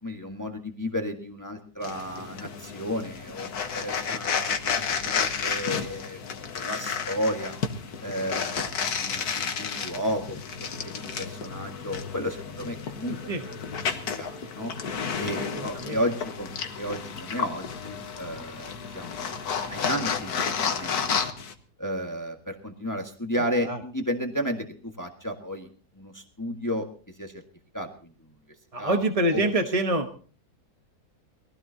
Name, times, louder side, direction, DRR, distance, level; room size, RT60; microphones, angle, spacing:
voice 1, 0.0-7.5 8.0-13.6 14.1-14.7 15.2-16.5 16.8-21.3 21.8-25.7 25.9-26.9 27.2-27.4 27.7-28.1 28.8-29.0 29.3-29.5, equal, 10° left, 3 dB, 1.5 m, -33 dB
sound 1, 1.8-21.5, left 6 dB, 75° left, 1.7 m, -31 dB
voice 2, 13.1-13.4 15.5-16.0 23.6-23.8 28.7-30.1, right 1 dB, 25° right, 5 dB, 1.0 m, -26 dB
21.5 x 16.0 x 2.8 m, 0.40 s
omnidirectional pair, 1.7 m